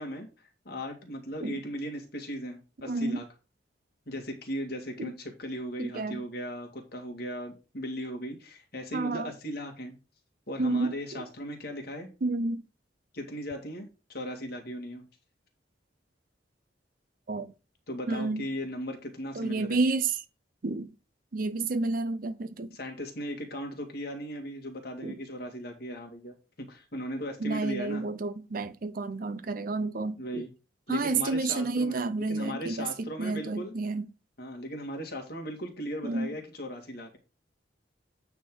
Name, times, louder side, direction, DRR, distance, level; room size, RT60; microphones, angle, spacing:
voice 1, 0.0-3.3 4.1-10.0 10.5-12.1 13.1-15.1 17.9-19.8 22.7-28.0 30.2-30.5 30.9-32.0 32.3-33.8 34.4-37.2, equal, 60° left, 2.1 m, -37 dB
voice 2, 2.9-3.2 5.0-5.1 5.8-6.2 8.9-9.3 10.6-11.2 12.2-12.6 17.3-17.5 18.1-18.5 19.3-20.2 20.6-20.9 21.3-22.7 25.0-25.2 27.4-30.4 30.9-34.1 36.0-36.3, right 3 dB, 50° right, 0.6 m, -30 dB
9.0 x 3.7 x 6.1 m
head